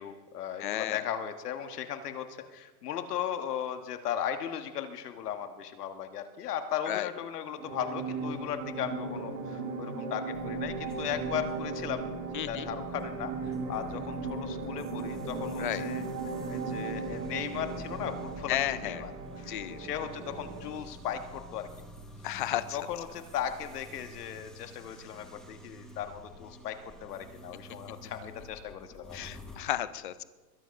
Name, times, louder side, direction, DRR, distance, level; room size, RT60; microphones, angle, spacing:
voice 1, 0.0-12.0 12.5-21.7 22.7-29.2, left 9 dB, 80° left, 8 dB, 1.6 m, -37 dB
voice 2, 0.6-1.0 6.9-7.1 12.3-12.7 15.6-15.8 18.5-19.0 19.5-19.8 22.2-22.8 29.1-30.2, left 13 dB, 35° left, 15 dB, 0.4 m, -32 dB
sound 1, 7.6-20.9, right 4 dB, 80° right, 2.4 m, -37 dB
sound 2, 10.3-29.6, equal, ahead, 0.9 m, -47 dB
22.0 x 8.0 x 5.3 m, 1.2 s
supercardioid pair, 175°, 46 cm